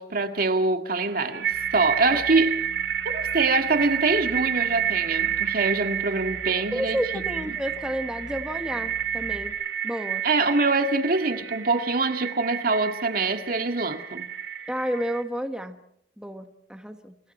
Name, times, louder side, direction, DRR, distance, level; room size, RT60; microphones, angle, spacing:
voice 1, 0.0-1.5 1.7-2.5 3.1-7.4 10.2-14.3, right 3 dB, 55° right, 1.9 m, -24 dB
sound 1, 0.9-15.2, right 9 dB, 85° right, 2.1 m, -30 dB
sound 2, 1.5-9.5, left 2 dB, 10° left, 7.9 m, -46 dB
voice 2, 6.6-9.6 9.8-10.2 14.7-15.8 16.2-17.1, equal, 5° right, 1.3 m, -31 dB
29.5 x 27.5 x 4.4 m
head